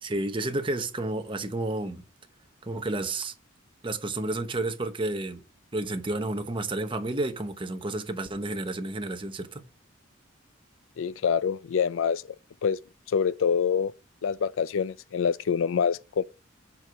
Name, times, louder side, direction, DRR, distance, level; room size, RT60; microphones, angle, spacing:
voice 1, 0.0-2.0 2.6-3.3 3.8-5.4 5.7-9.6, right 2 dB, 25° right, 1.0 m, -31 dB
voice 2, 11.0-12.2 12.6-12.8 13.1-13.9 14.2-16.2, left 6 dB, 90° left, 0.4 m, -26 dB
7.4 x 4.7 x 5.9 m
head